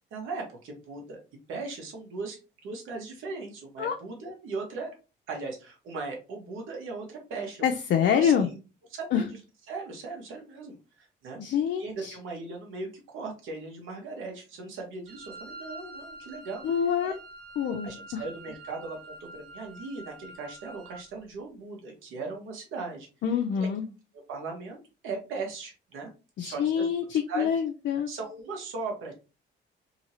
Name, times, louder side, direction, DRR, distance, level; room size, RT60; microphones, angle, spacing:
voice 1, 0.1-1.2 1.5-2.4 2.6-4.9 5.3-7.7 8.1-8.5 8.9-9.4 9.7-11.4 11.8-16.6 17.0-17.2 17.8-23.1 23.5-23.7 24.3-26.1 26.4-26.9 27.3-27.5 28.1-29.1, right 3 dB, 85° right, 1 dB, 1.2 m, -38 dB
voice 2, 7.6-8.5 9.1-9.2 11.4-12.1 16.6-17.1 17.6-18.2 23.2-23.8 26.4-28.1, left 8 dB, 65° left, 3 dB, 0.5 m, -26 dB
Wind instrument woodwind instrument, 15.1-21.1, right 2 dB, 50° right, 1.5 m, -46 dB
2.9 x 2.7 x 2.9 m, 0.31 s
cardioid pair, 90°, 20 cm